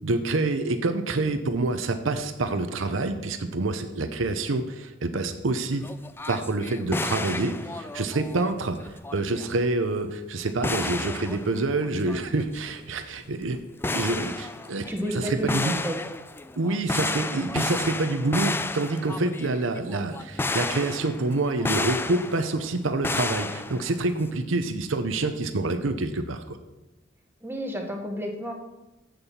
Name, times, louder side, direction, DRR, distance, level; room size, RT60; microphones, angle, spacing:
voice 1, 0.0-5.8 6.3-13.6 13.8-14.9 15.1-15.7 16.6-26.6, right 2 dB, 80° right, 8 dB, 0.8 m, -27 dB
sound 1, 5.7-8.5 8.8-9.5 10.5-12.9 13.3-13.4 13.8-22.7 23.0-24.2, left 3 dB, 10° left, 0.3 m, -32 dB
voice 2, 14.9-16.0 27.4-28.5, equal, 10° right, 2 dB, 1.3 m, -31 dB
7.7 x 6.9 x 7.1 m, 1.0 s
head